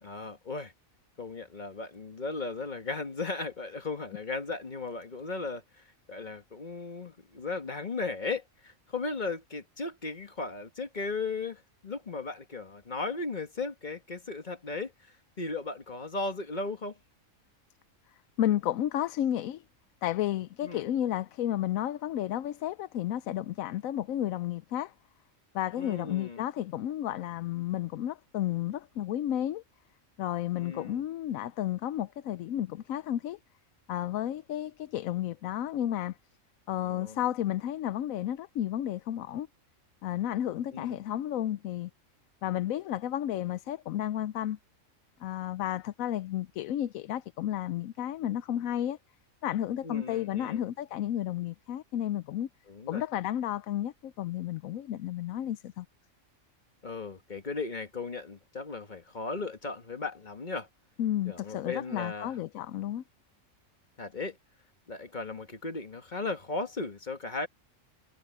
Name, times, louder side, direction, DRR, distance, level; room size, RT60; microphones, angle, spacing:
voice 1, 0.0-0.7 1.2-14.9 15.4-17.0 20.6-20.8 25.7-26.4 30.5-31.0 36.8-37.2 40.7-40.9 49.8-50.6 52.7-53.0 56.8-60.7 61.3-62.4 64.0-64.4 64.9-67.5, left 3 dB, 35° left, 1.4 m, -36 dB
voice 2, 18.4-19.6 20.0-24.9 25.5-29.6 30.2-33.4 33.9-36.2 36.7-39.5 40.0-41.9 42.4-44.6 45.2-49.0 49.4-52.5 52.9-55.9 61.0-63.0, left 12 dB, 90° left, 1.0 m, -32 dB
omnidirectional pair, 1.4 m